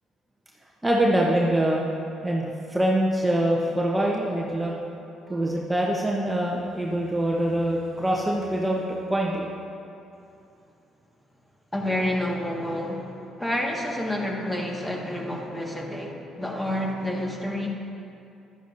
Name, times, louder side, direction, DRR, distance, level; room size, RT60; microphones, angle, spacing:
voice 1, 0.8-1.8 2.2-4.7 5.3-9.5, right 1 dB, 15° right, -2 dB, 1.0 m, -24 dB
voice 2, 11.7-17.7, left 1 dB, 15° left, -1 dB, 1.7 m, -29 dB
11.5 x 10.0 x 2.7 m, 2.6 s
hypercardioid pair, 55°, 0 cm